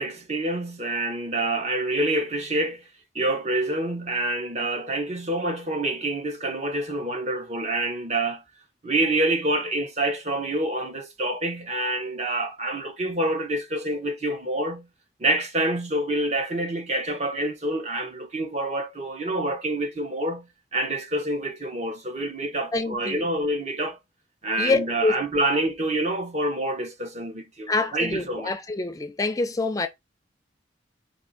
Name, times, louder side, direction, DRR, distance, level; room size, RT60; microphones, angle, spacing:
voice 1, 0.0-2.8 3.1-8.4 8.8-14.9 15.2-24.0 24.4-28.5, right 1 dB, 40° right, 0.9 m, -27 dB
voice 2, 22.7-23.3 24.6-25.1 27.7-29.9, left 3 dB, 20° left, 0.4 m, -26 dB
4.5 x 2.6 x 3.9 m
head